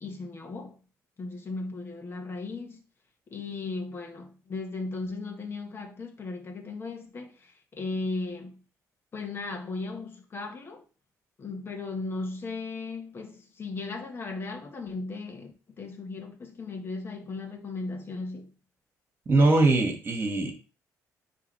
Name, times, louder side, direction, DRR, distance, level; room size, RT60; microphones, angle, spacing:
voice 1, 0.0-0.8 1.2-2.8 3.3-8.6 9.1-10.8 11.4-18.5, left 3 dB, 35° left, 1.6 m, -36 dB
voice 2, 19.3-20.5, right 2 dB, 35° right, 2.1 m, -21 dB
9.4 x 3.5 x 3.4 m
cardioid pair, 105°, 6 cm